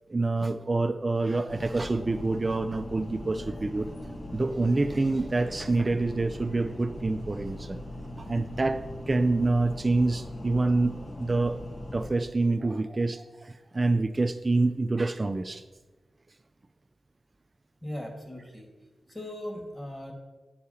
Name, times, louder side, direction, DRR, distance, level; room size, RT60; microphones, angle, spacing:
voice 1, 0.1-3.9 4.3-7.8 8.2-11.6 11.9-15.6, right 2 dB, 35° right, 8 dB, 0.4 m, -27 dB
sound 1, 1.5-12.1, left 1 dB, 60° left, 1.5 m, -40 dB
voice 2, 17.8-18.7 19.1-20.1, left 1 dB, 25° left, 2 dB, 2.1 m, -38 dB
8.5 x 4.8 x 5.6 m, 1.2 s
cardioid pair, 65°, 0 cm